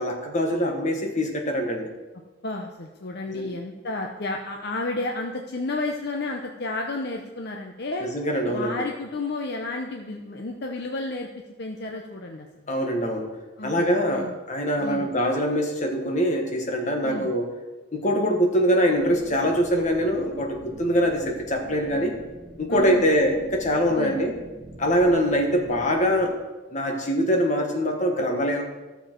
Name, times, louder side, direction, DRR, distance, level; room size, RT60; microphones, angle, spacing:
voice 1, 0.0-1.9 3.3-3.5 8.0-8.8 12.7-13.3 13.6-17.5 17.9-22.2 22.6-24.4 24.8-26.4 26.7-28.6, equal, 35° left, 2 dB, 1.3 m, -23 dB
voice 2, 2.4-8.1 8.5-11.3 11.6-12.5 13.6-14.4 14.8-15.1 17.0-17.3 22.7-23.1 24.0-24.2, left 2 dB, 50° left, 2 dB, 0.8 m, -32 dB
sound 1, 18.9-26.3, right 1 dB, 25° right, 1.2 m, -45 dB
12.0 x 6.9 x 4.5 m, 1.2 s
head